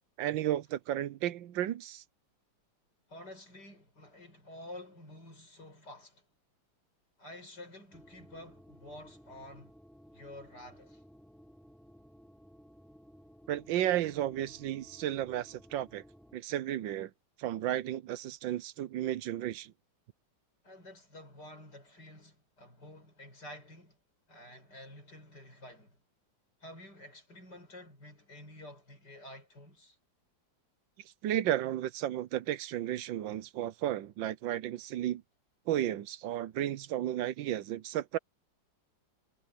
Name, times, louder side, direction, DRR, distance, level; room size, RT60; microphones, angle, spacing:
voice 1, 0.2-2.0 13.5-16.0 16.3-17.1 17.4-19.7 31.2-35.2 35.7-38.2, right 12 dB, 80° right, 1.5 m, -33 dB
voice 2, 3.1-6.2 7.2-9.7 10.1-11.0 20.6-24.0 24.3-26.0 26.6-30.0, left 1 dB, 60° left, 7.6 m, -50 dB
sound 1, 7.9-16.4, equal, ahead, 4.0 m, -57 dB
omnidirectional pair, 2.0 m